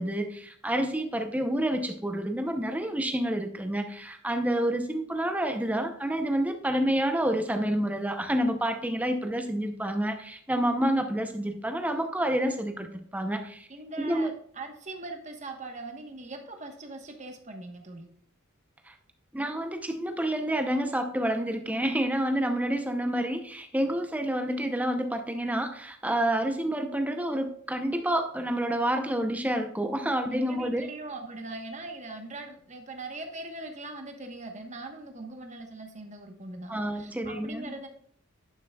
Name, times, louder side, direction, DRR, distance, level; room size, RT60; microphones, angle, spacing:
voice 1, 0.0-13.7 14.0-14.3 18.9-19.0 19.3-30.9 36.7-37.7, right 1 dB, 5° right, 6 dB, 0.7 m, -28 dB
voice 2, 13.7-14.3 14.6-18.1 30.3-37.9, right 2 dB, 35° right, 4 dB, 1.2 m, -41 dB
11.0 x 6.0 x 2.3 m, 0.62 s
head